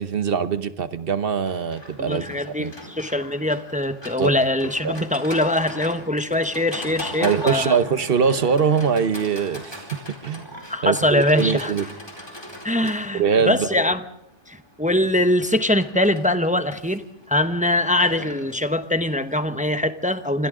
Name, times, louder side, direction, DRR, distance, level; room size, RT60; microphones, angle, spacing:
voice 1, 0.0-2.2 2.6-2.7 4.2-4.4 4.8-4.9 7.2-10.5 10.8-11.9 12.8-13.7, right 6 dB, 50° right, 12 dB, 1.1 m, -22 dB
Livestock farm animals working animals, 1.5-19.5, equal, 20° left, 4.3 m, -39 dB
voice 2, 2.0-7.8 10.7-11.7 12.6-14.0 14.5-20.5, left 1 dB, 5° right, 9 dB, 0.8 m, -22 dB
29.0 x 26.0 x 3.8 m, 0.81 s
omnidirectional pair, 1.3 m